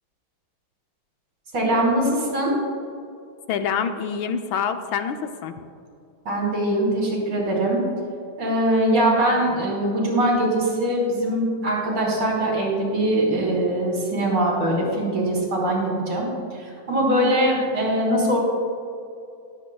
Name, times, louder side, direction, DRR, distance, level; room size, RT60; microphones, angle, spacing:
voice 1, 1.5-2.5 6.3-7.8 8.4-18.4, right 1 dB, 60° right, -3 dB, 3.6 m, -22 dB
voice 2, 3.5-5.6, left 7 dB, 75° left, 8 dB, 1.4 m, -26 dB
20.5 x 7.6 x 2.3 m, 2.5 s
omnidirectional pair, 2.3 m